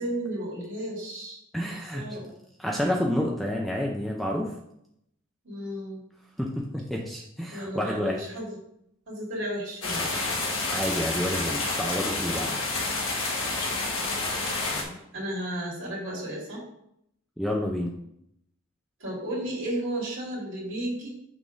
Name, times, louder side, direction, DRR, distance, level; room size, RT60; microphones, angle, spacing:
voice 1, 0.0-1.4 1.7-2.3 5.4-6.0 7.5-8.6 9.1-10.2 14.7-16.6 19.0-21.1, right 1 dB, 60° right, -5 dB, 2.5 m, -33 dB
voice 2, 1.5-2.0 2.6-4.5 6.4-8.2 10.7-12.6 17.4-17.9, equal, ahead, -1 dB, 0.5 m, -29 dB
sound 1, 9.8-14.8, left 3 dB, 65° left, 1.3 m, -29 dB
6.1 x 3.6 x 5.0 m, 0.76 s
head